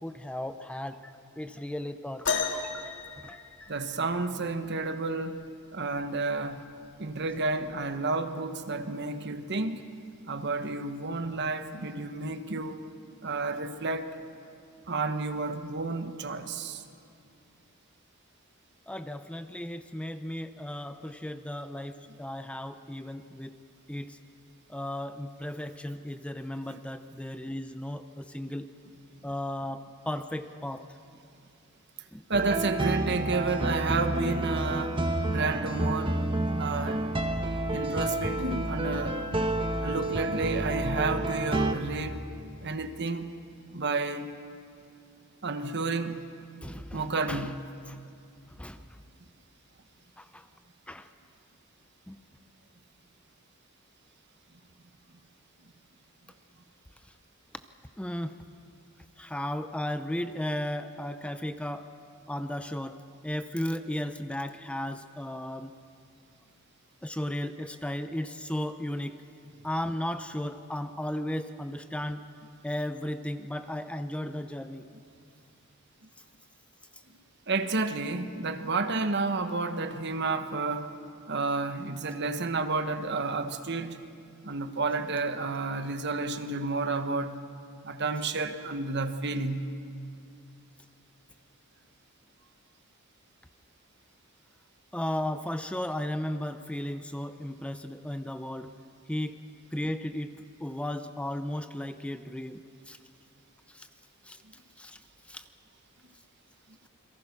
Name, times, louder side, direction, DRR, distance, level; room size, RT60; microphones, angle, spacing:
voice 1, 0.0-3.7 4.4-4.5 18.9-23.6 23.9-24.2 24.7-28.7 29.2-30.8 32.1-32.2 41.0-41.1 46.6-47.5 47.9-48.0 48.5-49.0 50.2-50.5 50.9-51.1 52.1-52.2 58.0-58.3 59.2-61.9 62.3-65.7 67.0-69.2 69.6-72.3 72.6-74.9 94.9-98.7 99.1-99.4 99.7-103.0 103.7-103.9 104.2-104.4 104.8-105.0 105.3-105.4, left 1 dB, 5° left, 0.6 m, -35 dB
sound 1, 2.2-4.1 5.8-5.9 6.7-6.9 7.8-7.9, left 5 dB, 60° left, 2.1 m, -33 dB
voice 2, 3.7-5.4 5.7-6.6 7.0-10.0 10.3-12.8 13.2-14.1 14.9-16.8 32.3-36.2 36.6-37.0 37.7-39.3 39.8-42.2 42.6-43.3 43.7-44.3 45.4-46.2 46.9-47.5 77.5-80.9 81.3-84.0 84.4-87.3 87.8-89.6, right 3 dB, 55° right, 1.2 m, -31 dB
sound 2, 32.3-41.7, right 1 dB, 25° right, 1.2 m, -29 dB
28.5 x 22.5 x 6.0 m
head